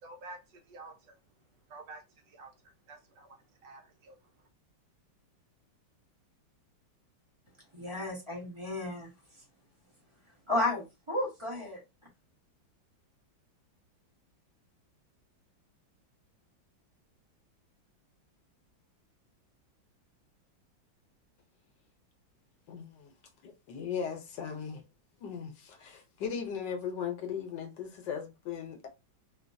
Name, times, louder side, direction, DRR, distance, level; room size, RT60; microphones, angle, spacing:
voice 1, 0.0-1.1 1.7-3.4 3.6-4.2, right 2 dB, 70° right, 1.3 m, -50 dB
voice 2, 7.7-9.1 10.5-11.8, left 2 dB, 20° right, 1.0 m, -33 dB
voice 3, 22.7-23.1 23.4-24.8 25.2-28.9, left 7 dB, 70° left, 1.3 m, -38 dB
3.8 x 2.4 x 2.5 m
omnidirectional pair, 2.1 m